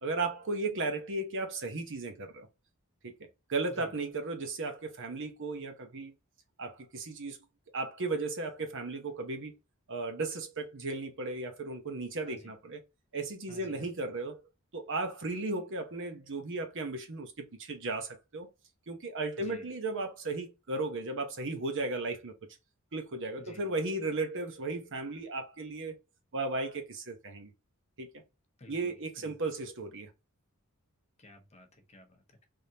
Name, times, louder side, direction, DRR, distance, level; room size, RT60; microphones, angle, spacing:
voice 1, 0.0-2.5 3.0-3.1 3.5-6.1 6.6-7.4 7.7-9.5 9.9-12.8 13.1-14.4 14.7-18.5 18.9-22.3 22.9-25.9 26.3-27.5 28.0-28.1 28.7-30.1, right 3 dB, 60° right, 0.9 m, -35 dB
voice 2, 13.5-13.9 19.4-19.7 23.4-23.6 28.6-29.4 31.2-32.4, left 1 dB, 30° left, 0.8 m, -53 dB
3.6 x 3.4 x 2.8 m
head